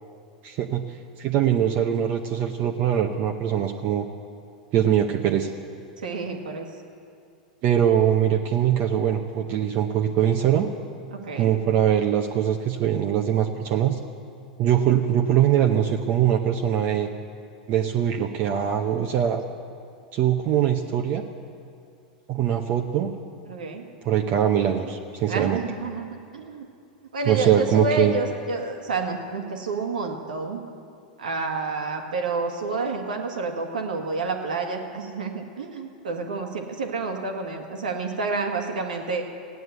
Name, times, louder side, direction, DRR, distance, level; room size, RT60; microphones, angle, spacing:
voice 1, 0.4-0.8 1.2-4.1 4.7-5.5 7.6-10.7 11.4-14.0 14.6-17.1 17.7-19.4 20.1-21.2 22.3-23.1 24.0-25.6 27.3-28.1, right 10 dB, 45° right, 2 dB, 0.8 m, -22 dB
voice 2, 6.0-6.7 11.1-11.6 23.5-23.8 25.3-26.7 27.1-30.6 31.2-39.2, right 3 dB, 90° right, 3 dB, 1.8 m, -29 dB
16.0 x 9.4 x 8.1 m, 2.4 s
hypercardioid pair, 110°, 4 cm